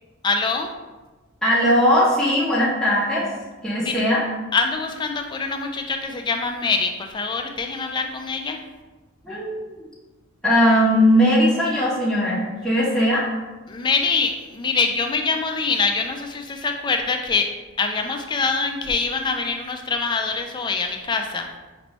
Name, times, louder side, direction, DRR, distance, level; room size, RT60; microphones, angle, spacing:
voice 1, 0.2-0.7 3.8-4.0 4.5-8.6 13.7-17.5 17.8-21.5, left 4 dB, 20° left, 4 dB, 0.3 m, -24 dB
voice 2, 1.4-3.3 3.6-4.2 9.2-9.5 10.4-13.3, equal, 5° left, -8 dB, 0.9 m, -19 dB
5.1 x 3.0 x 3.0 m, 1.2 s
head